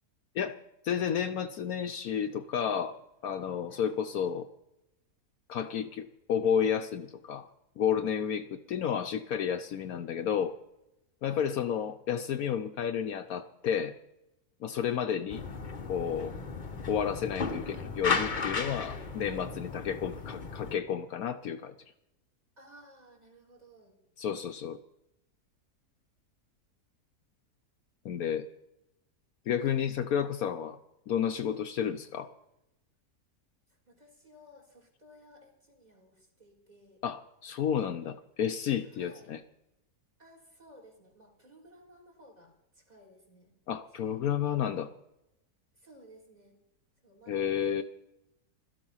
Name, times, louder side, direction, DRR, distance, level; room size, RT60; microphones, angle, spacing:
voice 1, 0.8-3.0 3.2-4.5 5.5-7.5 7.8-10.5 11.2-13.9 14.6-15.4 15.9-16.3 16.9-21.7 24.2-24.8 28.0-28.5 29.5-30.8 31.1-32.3 37.0-39.4 43.7-44.9 47.3-47.8, left 8 dB, 70° left, 8 dB, 1.1 m, -31 dB
voice 2, 8.2-9.1 11.3-11.5 16.7-16.9 20.0-20.3 22.6-24.0 29.6-29.8 33.7-37.0 38.8-39.3 40.2-43.5 44.0-44.2 45.7-46.5 47.0-47.8, equal, 25° right, 2 dB, 3.6 m, -57 dB
sound 1, 15.3-20.7, left 4 dB, 35° left, 1.0 m, -35 dB
16.5 x 13.5 x 5.6 m, 0.88 s
omnidirectional pair, 1.7 m